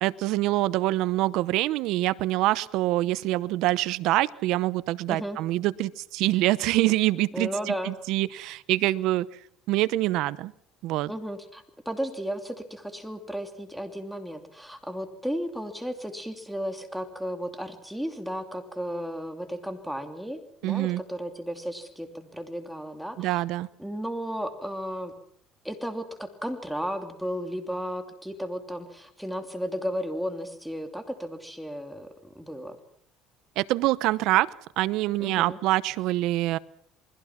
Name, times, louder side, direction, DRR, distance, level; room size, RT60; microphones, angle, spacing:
voice 1, 0.0-9.3 9.7-10.5 10.8-11.1 20.6-21.0 23.2-23.7 33.6-34.5 34.8-36.6, right 17 dB, 70° right, 17 dB, 0.8 m, -25 dB
voice 2, 7.3-7.9 11.1-23.4 23.8-25.1 25.6-32.8 35.2-35.6, equal, ahead, 6 dB, 2.9 m, -34 dB
28.5 x 21.0 x 6.0 m, 0.66 s
cardioid pair, 125°, 0 cm